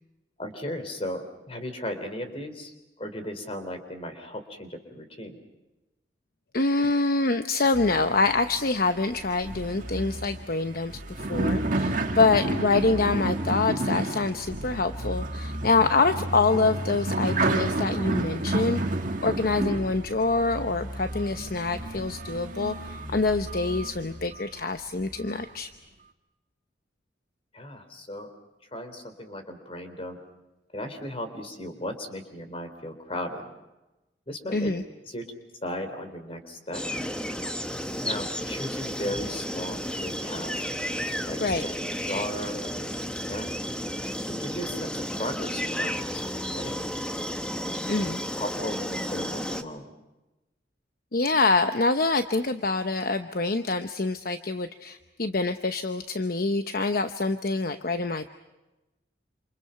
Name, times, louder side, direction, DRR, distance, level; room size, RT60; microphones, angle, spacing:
voice 1, 0.4-5.4 27.5-28.3 28.7-30.2 30.7-33.4 34.3-34.7 35.0-35.2 35.6-36.8 38.0-40.6 41.3-41.7 42.1-43.5 44.2-46.9 48.0-49.9, left 1 dB, 30° left, 7 dB, 3.7 m, -36 dB
voice 2, 6.5-18.8 19.2-25.7 34.5-34.8 41.4-41.6 47.9-48.2 51.1-58.3, left 3 dB, 55° left, 8 dB, 0.9 m, -25 dB
sound 1, 7.7-24.4 25.0-25.5, right 2 dB, 45° right, 1.8 m, -31 dB
sound 2, 36.7-49.6, equal, 5° left, 1.3 m, -32 dB
28.0 x 28.0 x 5.8 m, 1.0 s
head